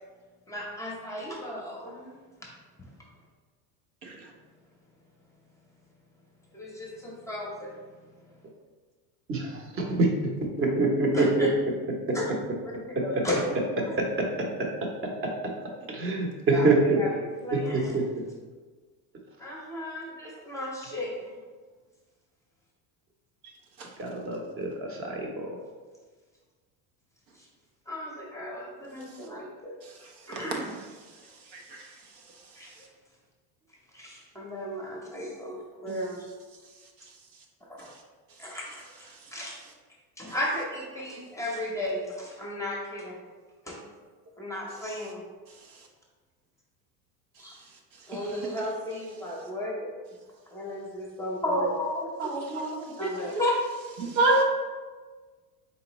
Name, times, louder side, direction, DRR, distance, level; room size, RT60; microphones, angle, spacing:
voice 1, 0.5-2.2 6.5-7.7 11.1-11.5 12.1-12.3 13.0-13.9 16.5-17.1 17.4-18.0 19.4-21.4 27.9-29.7 30.3-30.8 32.6-32.8 33.9-36.3 37.7-37.9 38.4-39.5 40.2-43.2 43.7-43.8 44.4-45.2 47.4-47.5 48.1-49.9 50.5-52.2 53.0-53.5, left 1 dB, 5° left, -3 dB, 0.7 m, -34 dB
voice 2, 9.3-10.3 10.6-11.5 12.1-12.2 12.9-13.2 13.8-14.5 14.8-15.5 15.9-17.0 17.5-18.0 24.0-25.6, right 2 dB, 30° right, 1 dB, 0.8 m, -26 dB
voice 3, 52.2-53.1 54.0-54.4, right 2 dB, 85° right, 1 dB, 1.0 m, -26 dB
4.1 x 3.7 x 3.0 m, 1.4 s
supercardioid pair, 120°, 43 cm